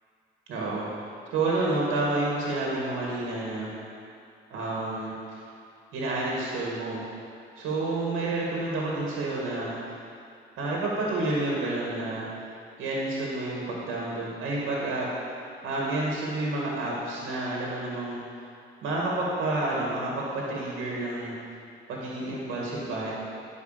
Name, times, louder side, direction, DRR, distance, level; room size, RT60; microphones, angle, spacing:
voice 1, 0.5-0.9 1.3-3.8 4.5-5.4 5.9-7.0 7.6-9.8 10.6-12.3 12.8-18.2 18.8-21.3 21.9-23.1, right 2 dB, 90° right, -4 dB, 1.9 m, -29 dB
10.5 x 5.1 x 6.7 m, 2.4 s
cardioid pair, 90°, 20 cm